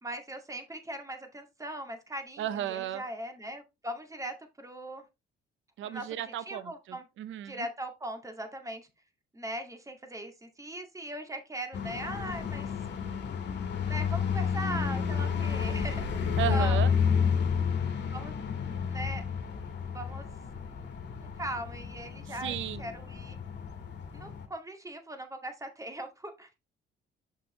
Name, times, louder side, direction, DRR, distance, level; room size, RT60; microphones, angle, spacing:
voice 1, 0.0-5.0 5.8-7.1 7.4-8.9 9.3-12.7 13.9-16.8 18.1-18.3 18.9-19.2 19.9-20.3 21.2-23.4 24.1-26.5, right 1 dB, 15° right, 2.0 m, -40 dB
voice 2, 2.4-3.0 5.8-7.7 16.4-16.9 22.4-22.8, right 11 dB, 75° right, 0.7 m, -34 dB
sound 1, 11.7-24.4, left 6 dB, 60° left, 1.7 m, -31 dB
6.9 x 6.2 x 3.1 m
cardioid pair, 90°, 20 cm